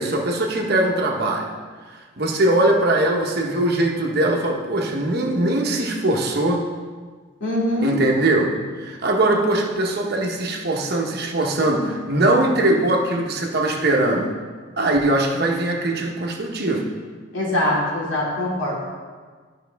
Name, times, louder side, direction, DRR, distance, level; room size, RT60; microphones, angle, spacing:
voice 1, 0.0-1.5 2.2-6.6 7.8-14.3 14.8-16.9, right 1 dB, 50° right, 1 dB, 1.0 m, -21 dB
voice 2, 7.4-8.0 17.3-18.8, left 1 dB, 75° left, -5 dB, 2.5 m, -23 dB
11.5 x 5.5 x 3.4 m, 1.5 s
head